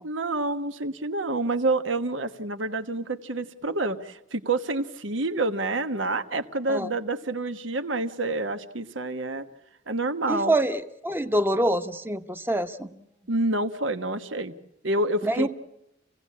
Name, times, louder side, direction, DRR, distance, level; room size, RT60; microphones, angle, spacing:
voice 1, 0.0-9.4 9.9-10.5 13.3-14.6 14.8-15.5, right 2 dB, 75° right, 9 dB, 1.3 m, -28 dB
voice 2, 10.3-12.9 15.2-15.5, right 1 dB, 10° right, 9 dB, 0.9 m, -25 dB
28.5 x 17.0 x 8.5 m, 0.89 s
head